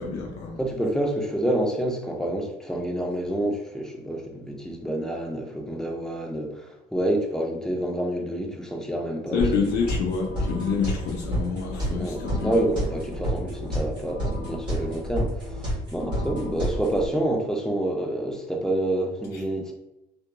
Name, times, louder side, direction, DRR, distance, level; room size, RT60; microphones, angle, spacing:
voice 1, 0.0-0.6 9.3-12.5, left 5 dB, 85° left, -1 dB, 0.5 m, -27 dB
voice 2, 0.6-9.5 11.9-19.7, right 1 dB, 5° left, 0 dB, 0.5 m, -28 dB
sound 1, 9.4-17.1, equal, 25° right, 1.4 m, -30 dB
2.8 x 2.3 x 2.2 m, 0.91 s
cardioid pair, 110°, 17 cm